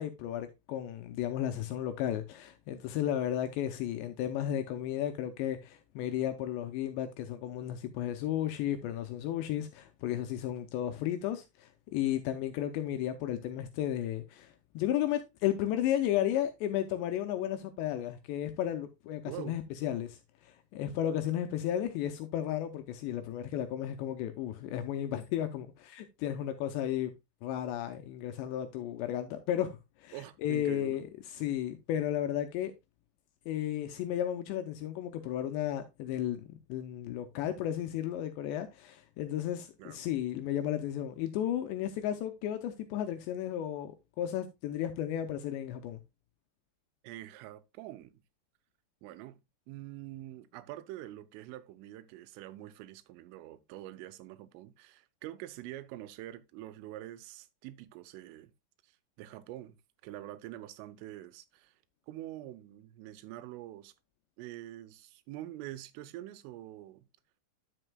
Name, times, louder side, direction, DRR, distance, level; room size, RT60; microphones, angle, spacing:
voice 1, 0.0-27.1 27.4-32.7 33.5-46.0, left 11 dB, 85° left, 2.6 m, -34 dB
voice 2, 19.2-19.6 30.1-31.0 39.8-40.0 47.0-48.2 49.0-58.5 58.8-59.8 60.0-61.8 62.1-63.9 64.4-67.1, right 14 dB, 85° right, 3.3 m, -45 dB
10.0 x 7.8 x 2.2 m
omnidirectional pair, 5.6 m